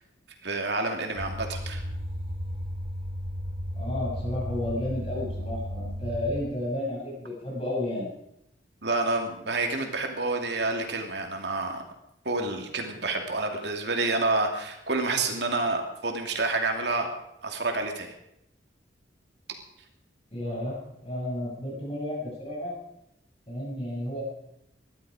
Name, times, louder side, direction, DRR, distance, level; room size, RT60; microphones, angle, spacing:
voice 1, 0.4-1.8 8.8-11.8 12.2-17.1 17.4-18.1, right 3 dB, 65° right, 3 dB, 2.7 m, -28 dB
sound 1, 1.1-6.4, equal, 35° right, 5.3 m, -34 dB
voice 2, 3.7-8.1 20.3-22.7 23.5-24.2, left 1 dB, 30° left, -5 dB, 7.7 m, -32 dB
19.5 x 13.0 x 5.0 m, 0.81 s
head